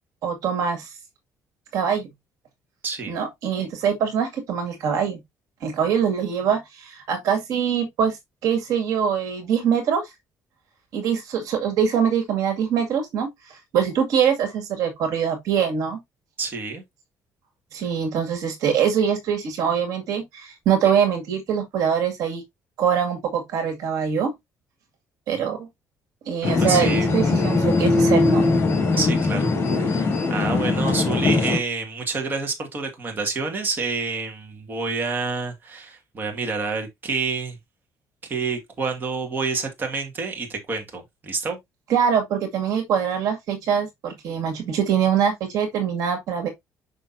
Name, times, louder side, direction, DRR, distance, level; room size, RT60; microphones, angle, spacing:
voice 1, 0.2-0.9 1.7-2.1 3.1-5.2 5.6-8.2 8.4-10.1 10.9-16.0 17.7-22.4 22.8-24.3 25.3-25.7 26.3-28.4 41.9-46.5, right 7 dB, 70° right, 2.1 m, -23 dB
voice 2, 16.4-16.8 25.4-25.5 26.4-27.1 28.9-29.5 29.8-37.6 38.2-41.6, right 4 dB, 35° right, 2.1 m, -28 dB
sound 1, 26.4-31.6, left 3 dB, 40° left, 2.8 m, -21 dB
6.2 x 5.8 x 2.7 m
cardioid pair, 120°, 6 cm